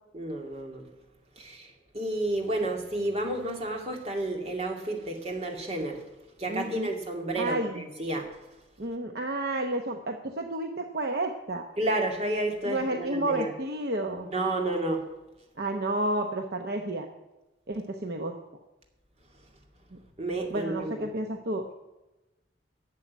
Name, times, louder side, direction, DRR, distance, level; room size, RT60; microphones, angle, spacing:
voice 1, 0.1-0.9 1.4-6.0 6.4-8.3 11.8-13.5 14.2-15.0 20.2-21.1, right 1 dB, 35° right, 1 dB, 2.3 m, -31 dB
voice 2, 6.5-6.9 7.3-7.8 8.8-11.7 12.6-14.3 15.6-17.1 17.7-18.4 19.9-20.0 20.5-21.7, right 1 dB, 55° right, 4 dB, 0.9 m, -31 dB
11.5 x 7.5 x 9.2 m, 1.0 s
head